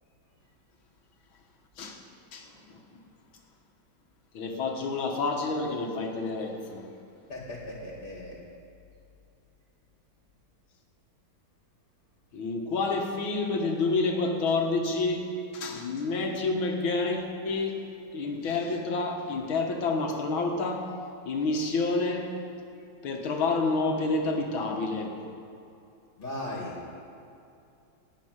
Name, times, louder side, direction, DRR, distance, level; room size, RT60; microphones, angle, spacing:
voice 1, 2.3-2.8 4.3-6.8 12.3-15.2 15.5-17.8 18.1-20.8 21.3-22.3 23.0-25.1, left 3 dB, 80° left, 2 dB, 2.3 m, -29 dB
voice 2, 7.3-8.4 26.2-26.7, left 1 dB, 25° left, -3 dB, 2.5 m, -37 dB
17.5 x 6.0 x 9.7 m, 2.6 s
omnidirectional pair, 2.2 m